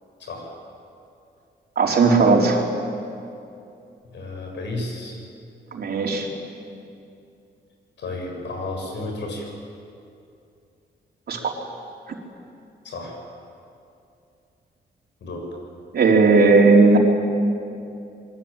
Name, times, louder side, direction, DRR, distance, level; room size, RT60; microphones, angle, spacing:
voice 1, 0.2-0.5 4.1-5.2 8.0-9.5 12.8-13.2 15.2-15.5, left 2 dB, 75° left, 1 dB, 7.7 m, -32 dB
voice 2, 1.8-2.6 5.7-6.3 11.3-11.5 15.9-17.0, right 3 dB, 60° right, 0 dB, 4.0 m, -16 dB
27.5 x 23.0 x 9.1 m, 2.6 s
wide cardioid pair, 135°, 19 cm